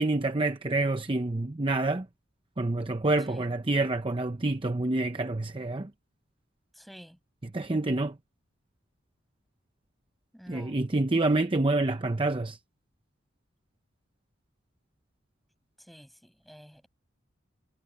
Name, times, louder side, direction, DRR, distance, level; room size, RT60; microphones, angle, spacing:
voice 1, 0.0-2.1 2.6-5.9 7.5-8.2 10.5-12.6, right 2 dB, 25° right, 0.8 m, -27 dB
voice 2, 6.7-7.2 10.3-10.8 15.8-16.9, equal, ahead, 6.4 m, -50 dB
head